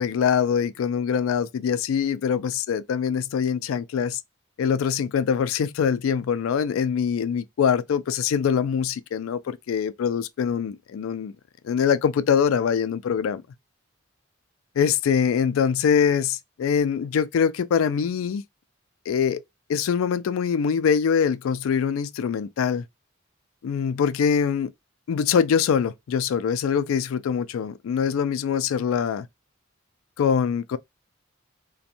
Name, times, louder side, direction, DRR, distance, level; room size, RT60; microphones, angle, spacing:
voice 1, 0.0-4.2 4.6-11.3 11.6-13.4 14.8-18.4 19.1-19.4 19.7-22.8 23.6-24.7 25.1-29.3 30.2-30.8, left 7 dB, 80° left, 0.3 m, -23 dB
2.7 x 2.2 x 2.5 m
head